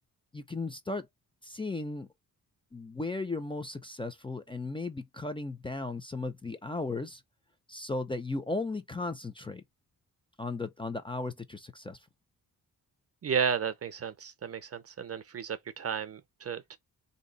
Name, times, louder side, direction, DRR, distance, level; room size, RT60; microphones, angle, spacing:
voice 1, 0.3-1.1 1.4-2.1 2.7-7.2 7.7-9.6 10.4-12.0, left 3 dB, 15° left, 0.5 m, -36 dB
voice 2, 13.2-16.8, right 7 dB, 40° right, 0.6 m, -33 dB
3.8 x 2.8 x 3.9 m
wide cardioid pair, 130°, 36 cm